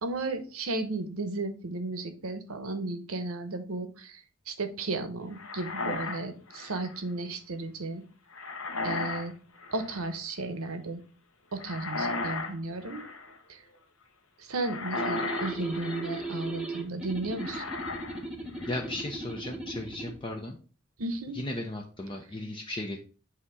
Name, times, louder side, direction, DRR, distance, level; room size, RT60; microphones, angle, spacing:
voice 1, 0.0-4.2 4.5-8.0 8.8-9.4 9.7-11.0 11.5-13.0 13.5-13.6 14.4-17.6 21.0-21.4, right 2 dB, 80° right, 8 dB, 0.9 m, -34 dB
sound 1, 5.4-7.0 8.3-9.3 9.6-10.1 11.6-12.5 12.8-13.4 14.6-16.3 17.4-18.2 18.5-19.0, left 3 dB, 75° left, 1.1 m, -35 dB
sound 2, 15.0-20.2, right 2 dB, 5° right, 0.8 m, -37 dB
voice 2, 18.7-20.6 21.3-23.0, left 1 dB, 25° left, 2 dB, 0.5 m, -36 dB
7.8 x 2.8 x 4.6 m, 0.38 s
head